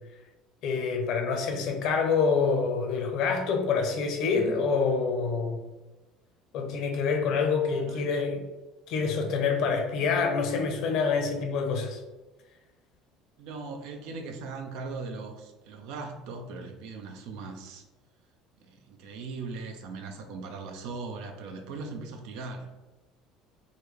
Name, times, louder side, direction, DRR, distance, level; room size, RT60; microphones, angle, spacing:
voice 1, 0.6-5.6 6.5-8.4 8.9-12.0, left 5 dB, 65° left, 3 dB, 0.6 m, -26 dB
voice 2, 7.7-8.3 13.4-17.8 18.6-22.7, right 4 dB, 75° right, 5 dB, 0.5 m, -39 dB
3.7 x 2.2 x 3.2 m, 1.2 s
supercardioid pair, 115°, 0 cm